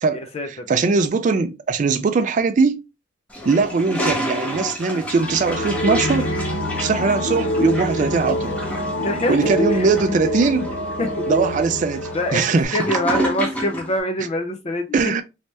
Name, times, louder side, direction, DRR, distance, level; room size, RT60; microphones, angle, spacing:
voice 1, 0.1-0.7 3.4-3.6 9.0-9.9 10.4-10.5 11.0-11.2 12.1-15.1, left 1 dB, 35° left, 0.4 m, -25 dB
voice 2, 0.7-2.8 3.5-6.3 6.8-8.6 9.3-10.7 11.3-12.8 14.9-15.2, right 4 dB, 40° right, 0.3 m, -20 dB
Toilet flush, 3.3-14.0, equal, 5° left, 0.7 m, -30 dB
sound 1, 5.1-12.6, left 1 dB, 80° left, 0.6 m, -26 dB
3.2 x 2.8 x 3.2 m
head